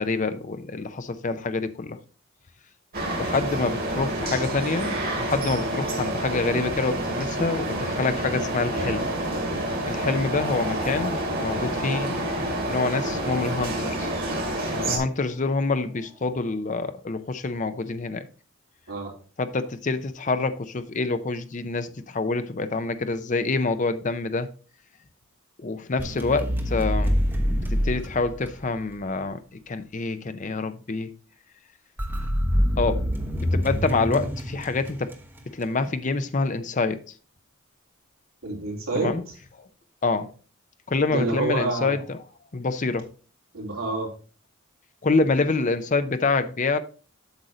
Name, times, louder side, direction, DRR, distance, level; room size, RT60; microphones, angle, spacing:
voice 1, 0.0-2.0 3.2-9.1 9.8-14.1 14.8-18.3 19.4-24.5 25.6-27.2 27.5-29.4 29.7-31.1 32.8-33.0 33.4-35.1 35.5-37.0 38.9-39.2 39.6-39.7 40.0-40.3 40.9-42.2 42.5-43.1 45.0-46.8, left 3 dB, 35° left, 0.6 m, -26 dB
sound 1, 2.9-15.0, right 1 dB, 45° right, 2.4 m, -28 dB
sound 2, 10.3-16.3, right 1 dB, 25° right, 1.8 m, -39 dB
sound 3, 26.0-29.0 32.0-35.4, equal, 10° right, 1.0 m, -26 dB
voice 2, 38.4-39.1 41.1-41.9 43.5-44.1, right 2 dB, 70° right, 3.4 m, -28 dB
8.2 x 6.4 x 3.8 m
head